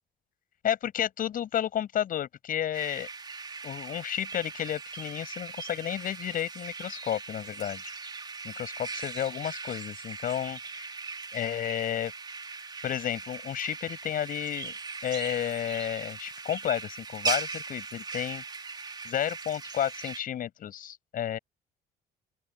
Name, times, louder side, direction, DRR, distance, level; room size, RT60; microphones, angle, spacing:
voice 1, 0.6-3.1 3.6-7.9 8.4-10.9 11.3-12.1 12.8-14.7 15.0-18.4 19.0-21.4, left 10 dB, 55° left, 6.5 m, -32 dB
sound 1, 2.7-20.2, right 4 dB, 25° right, 3.6 m, -39 dB
open air
cardioid pair, 110°, 17 cm